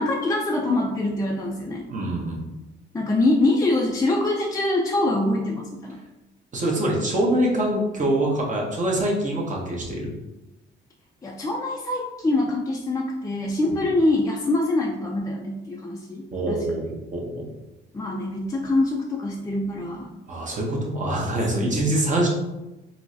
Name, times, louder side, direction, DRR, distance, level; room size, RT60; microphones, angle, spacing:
voice 1, 0.0-1.9 2.9-6.0 11.2-16.6 17.9-20.1 21.6-21.9, left 2 dB, 15° left, -2 dB, 0.4 m, -24 dB
voice 2, 1.9-2.4 6.5-10.1 16.3-17.5 20.3-22.3, right 1 dB, 40° right, -3 dB, 1.1 m, -24 dB
4.3 x 2.1 x 2.7 m, 1.0 s
cardioid pair, 90°, 20 cm